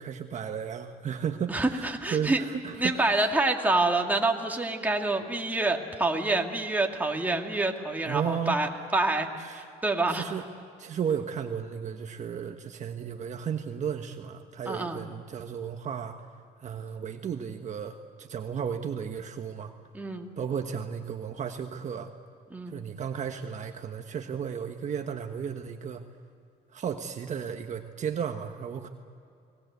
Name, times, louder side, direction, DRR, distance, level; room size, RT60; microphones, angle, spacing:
voice 1, 0.0-3.3 8.0-8.6 9.4-9.6 10.1-10.4 10.8-16.2 16.6-19.7 20.4-22.1 22.7-26.0 26.7-28.9, right 7 dB, 45° right, 5 dB, 1.3 m, -34 dB
voice 2, 1.5-2.4 2.8-10.2 14.7-15.0 19.9-20.3 22.5-22.9, right 2 dB, 10° right, 2 dB, 2.3 m, -27 dB
29.5 x 19.5 x 8.2 m, 2.6 s
cardioid pair, 110°, 17 cm